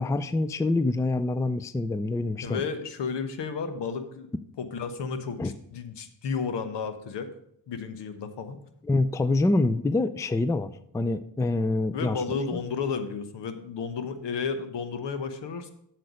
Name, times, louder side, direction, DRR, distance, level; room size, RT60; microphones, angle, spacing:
voice 1, 0.0-2.6 5.4-5.5 8.8-12.6, left 2 dB, 10° left, 13 dB, 0.4 m, -26 dB
voice 2, 2.4-4.3 4.6-7.3 7.7-8.6 11.9-15.7, left 5 dB, 70° left, 9 dB, 1.2 m, -32 dB
7.8 x 6.6 x 5.0 m, 0.71 s
cardioid pair, 70°, 43 cm